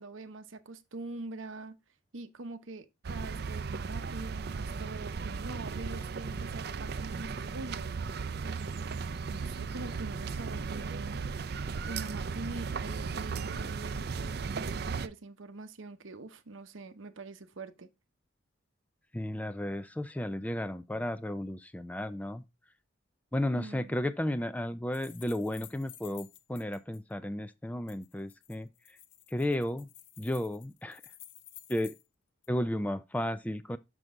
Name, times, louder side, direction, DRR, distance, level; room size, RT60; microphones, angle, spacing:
voice 1, 0.0-1.7 2.1-8.0 8.4-8.8 9.3-11.2 11.9-17.9 23.5-23.9, right 2 dB, 75° right, 0.9 m, -44 dB
sound 1, 3.0-15.1, right 5 dB, 50° right, 0.5 m, -36 dB
voice 2, 19.1-22.4 23.3-29.0 29.3-29.9 30.2-31.0 31.7-31.9 32.5-33.8, left 1 dB, 5° left, 0.3 m, -33 dB
sound 2, 24.9-27.0 27.9-32.1 32.4-32.5, left 13 dB, 65° left, 0.7 m, -53 dB
6.6 x 6.2 x 3.6 m
head